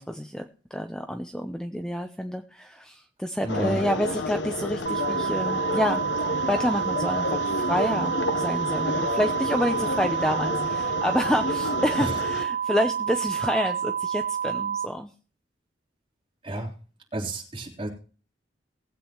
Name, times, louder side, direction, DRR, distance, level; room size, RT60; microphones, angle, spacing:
voice 1, 0.0-6.0 6.5-15.1, equal, 5° left, 6 dB, 0.6 m, -28 dB
voice 2, 3.4-3.8 16.4-16.7 17.1-17.9, right 1 dB, 30° right, -2 dB, 3.6 m, -31 dB
sound 1, 3.5-12.4, left 2 dB, 75° left, 1.0 m, -30 dB
sound 2, 4.8-14.9, right 8 dB, 50° right, 3.0 m, -29 dB
19.5 x 8.4 x 3.0 m, 0.38 s
head